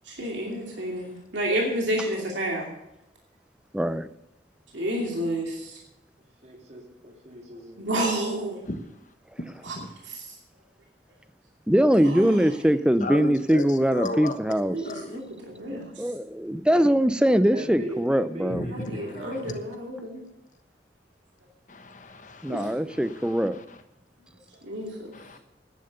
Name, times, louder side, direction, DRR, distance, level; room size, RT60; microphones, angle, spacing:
voice 1, 0.0-2.7 4.7-5.8 7.8-8.6 9.6-9.8 10.0-10.4 12.0-12.5 14.7-16.0 18.7-20.2 22.5-22.7 24.5-25.1, right 1 dB, 80° right, -1 dB, 2.6 m, -30 dB
voice 2, 3.7-4.1 11.7-14.8 15.7-18.6 22.4-23.6, equal, 5° right, 13 dB, 0.4 m, -22 dB
voice 3, 6.4-7.9 17.5-19.6, right 1 dB, 35° right, 2 dB, 2.2 m, -39 dB
voice 4, 13.0-14.4 14.8-15.2 18.5-19.5 21.7-22.5 23.0-23.8 25.1-25.4, left 1 dB, 45° left, 8 dB, 1.2 m, -35 dB
10.5 x 10.5 x 6.8 m, 0.88 s
head